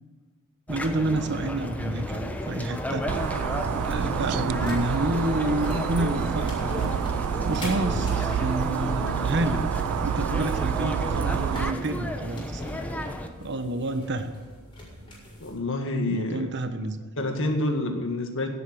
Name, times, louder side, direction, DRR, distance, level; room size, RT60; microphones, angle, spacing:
sound 1, 0.7-13.3, equal, 5° left, 1.0 m, -32 dB
voice 1, 0.7-3.1 3.7-6.9 7.5-9.6 10.0-12.6 13.4-14.3 16.1-17.0, right 1 dB, 55° right, 8 dB, 1.1 m, -29 dB
sound 2, 3.1-11.7, right 8 dB, 85° right, 0.3 m, -28 dB
sound 3, 4.6-15.6, equal, 25° left, 5.2 m, -43 dB
voice 2, 15.4-16.5 17.2-18.5, left 2 dB, 65° left, 4 dB, 1.9 m, -28 dB
17.0 x 8.1 x 6.3 m, 1.5 s
head